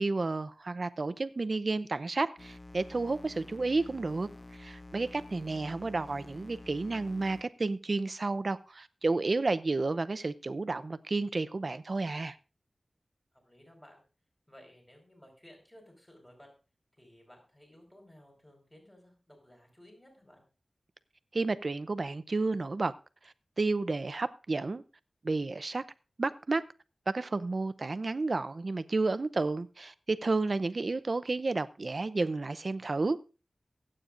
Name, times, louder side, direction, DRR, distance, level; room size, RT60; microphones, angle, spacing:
voice 1, 0.0-4.3 4.6-12.4 21.3-22.9 23.6-24.8 25.2-25.8 26.2-26.6 27.1-33.2, right 3 dB, 60° right, 0.6 m, -31 dB
sound 1, 2.4-7.4, left 2 dB, 45° left, 0.7 m, -49 dB
voice 2, 13.3-14.0 14.5-16.5 17.0-20.4, equal, 10° left, 5.1 m, -57 dB
23.0 x 8.8 x 2.6 m
cardioid pair, 40°, 0 cm